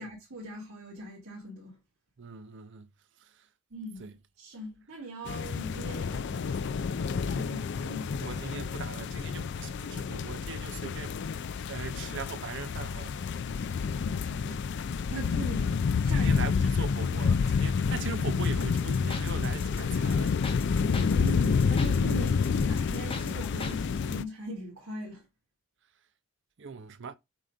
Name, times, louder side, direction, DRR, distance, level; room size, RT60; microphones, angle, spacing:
voice 1, 0.0-1.8 3.7-4.1 4.4-8.2 13.6-16.4 20.8-25.3, equal, 75° right, 2.3 m, -41 dB
voice 2, 2.2-2.9 3.2-3.3 4.0-4.1 8.2-13.3 14.4-14.6 16.1-20.4 26.6-27.2, right 5 dB, 55° right, 0.6 m, -41 dB
sound 1, 5.3-24.2, left 5 dB, 50° left, 0.3 m, -29 dB
sound 2, 18.4-23.8, left 2 dB, 25° left, 0.7 m, -38 dB
7.5 x 2.5 x 5.2 m
head